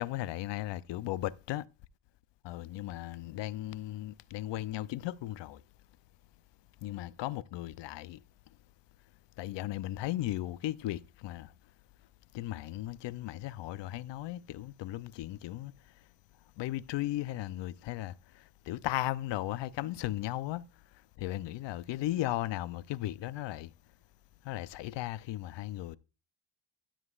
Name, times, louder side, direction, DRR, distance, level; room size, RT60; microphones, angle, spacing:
voice 1, 0.0-1.7 2.4-5.6 6.8-8.2 9.4-11.5 12.3-15.7 16.6-20.6 21.2-23.7 24.4-26.0, left 15 dB, 60° left, 0.6 m, -36 dB
13.0 x 7.4 x 2.4 m
cardioid pair, 110°, 48 cm